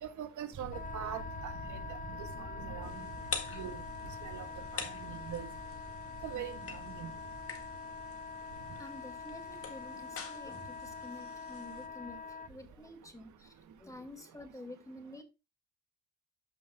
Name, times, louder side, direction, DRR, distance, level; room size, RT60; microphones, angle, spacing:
voice 1, 0.0-1.8 2.1-3.1 3.5-3.8 4.2-4.5 4.7-5.5 6.2-7.1, right 9 dB, 75° right, 1.4 m, -43 dB
sound 1, 0.5-14.1, right 1 dB, 50° right, 3.3 m, -50 dB
Wind instrument woodwind instrument, 0.7-12.5, left 5 dB, 25° left, 0.6 m, -45 dB
sound 2, 2.8-11.9, left 6 dB, 50° left, 1.8 m, -46 dB
voice 2, 8.8-15.2, left 1 dB, 10° left, 2.1 m, -49 dB
14.0 x 5.7 x 2.3 m
cardioid pair, 90°, 30 cm